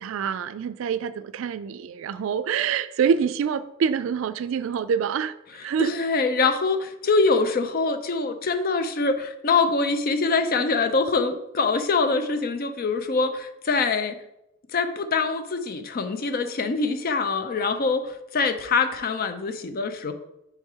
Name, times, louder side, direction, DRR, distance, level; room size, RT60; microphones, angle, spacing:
voice 1, 0.0-5.3 5.6-5.9, right 7 dB, 70° right, 13 dB, 0.3 m, -26 dB
voice 2, 5.8-14.2 14.7-20.1, left 4 dB, 45° left, 9 dB, 0.5 m, -24 dB
4.8 x 4.5 x 4.7 m, 0.88 s
head